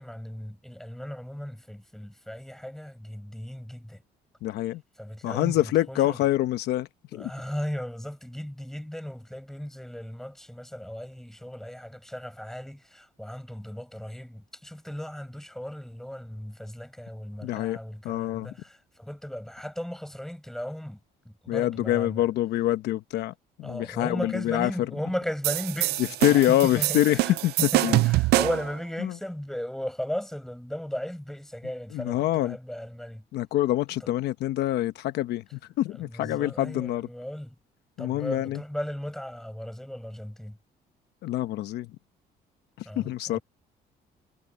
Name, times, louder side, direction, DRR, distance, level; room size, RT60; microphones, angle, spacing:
voice 1, 0.0-4.0 5.0-6.2 7.1-21.0 21.2-22.3 23.6-33.2 34.0-34.1 36.0-37.5 38.0-40.6 42.8-43.4, equal, ahead, 6.1 m, -36 dB
voice 2, 4.4-4.8 5.2-7.3 17.4-17.8 18.0-18.5 21.5-24.7 26.2-28.0 29.0-29.1 31.9-32.6 33.3-37.1 38.0-38.6 41.2-41.9 42.8-43.4, left 14 dB, 80° left, 1.0 m, -26 dB
sound 1, 25.4-28.7, right 18 dB, 70° right, 0.4 m, -25 dB
cardioid pair, 110°, 17 cm